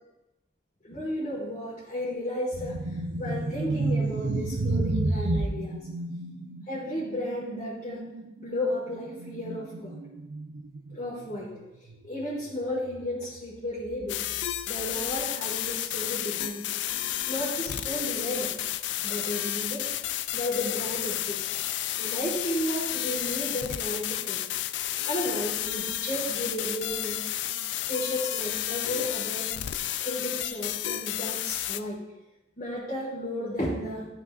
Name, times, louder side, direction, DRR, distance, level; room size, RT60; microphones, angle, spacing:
voice 1, 0.8-5.7 6.7-8.0 8.4-9.9 10.9-11.5 12.0-14.2 14.7-16.7 17.3-18.5 19.0-19.9 20.3-21.5 22.0-24.4 25.0-27.2 27.9-29.5 30.0-32.0 32.6-34.1, left 1 dB, 40° left, -8 dB, 1.7 m, -33 dB
sound 1, 2.5-12.5 12.8-13.0 13.8-14.8, right 2 dB, 80° right, 0.5 m, -32 dB
sound 2, 14.1-31.8, left 13 dB, 80° left, 0.3 m, -31 dB
12.0 x 5.8 x 2.5 m, 0.98 s
head